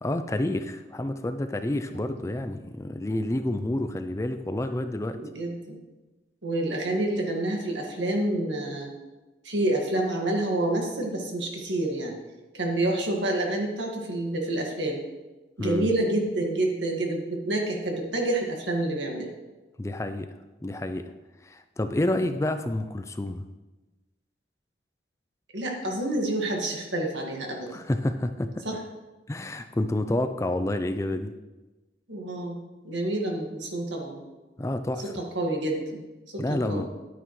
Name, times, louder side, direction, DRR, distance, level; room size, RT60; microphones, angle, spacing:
voice 1, 0.0-5.2 15.6-15.9 19.8-20.3 20.6-21.1 21.4-23.4 27.7-28.6 29.3-31.3 34.6-35.1 36.4-36.9, left 1 dB, 15° left, 9 dB, 0.4 m, -29 dB
voice 2, 5.1-5.8 6.4-8.9 9.4-12.2 12.5-15.0 15.6-19.3 25.5-27.7 28.7-28.8 32.1-32.6 32.8-34.2 35.4-36.0 36.3-36.9, right 1 dB, 85° right, 1 dB, 1.8 m, -28 dB
10.5 x 9.2 x 3.1 m, 1.1 s
head